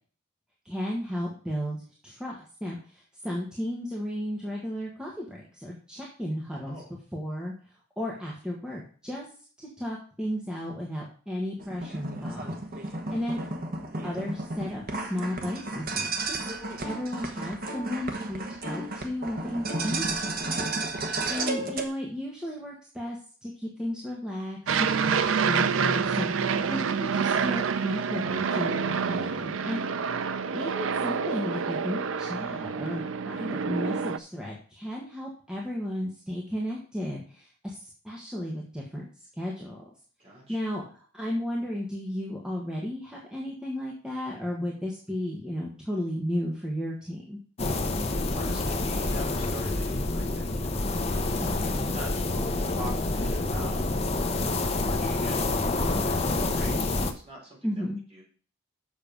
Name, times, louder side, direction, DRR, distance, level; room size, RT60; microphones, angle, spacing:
voice 1, 0.6-6.8 7.1-7.5 8.0-9.2 9.6-13.4 14.0-20.4 21.3-29.8 30.5-39.0 39.3-39.8 40.5-40.8 41.1-47.4 51.4-51.8 57.6-58.0, equal, 5° right, -3 dB, 1.4 m, -34 dB
sound 1, 11.6-21.9, right 2 dB, 50° right, 1.2 m, -33 dB
voice 2, 21.2-21.5 26.5-26.8 40.2-40.6 48.3-50.9 51.8-53.8 54.3-58.2, right 1 dB, 30° right, -3 dB, 3.9 m, -44 dB
Aircraft, 24.7-34.2, right 6 dB, 85° right, 0.5 m, -27 dB
sound 2, 47.6-57.1, left 2 dB, 30° left, 0.8 m, -28 dB
7.3 x 6.5 x 5.2 m, 0.42 s
head